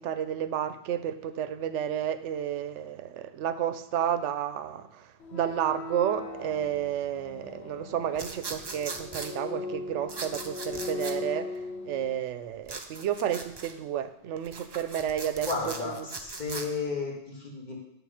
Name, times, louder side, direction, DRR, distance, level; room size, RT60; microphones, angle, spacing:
voice 1, 0.0-16.1, right 10 dB, 85° right, 11 dB, 0.9 m, -31 dB
sound 1, 5.2-12.2, left 3 dB, 65° left, 1.1 m, -39 dB
sound 2, 8.2-9.3 10.1-11.2 12.7-13.7 14.4-16.7, right 4 dB, 30° right, 0.5 m, -39 dB
voice 2, 15.5-17.8, left 4 dB, 40° left, -3 dB, 1.9 m, -33 dB
9.2 x 3.6 x 6.3 m, 0.80 s
omnidirectional pair, 1.2 m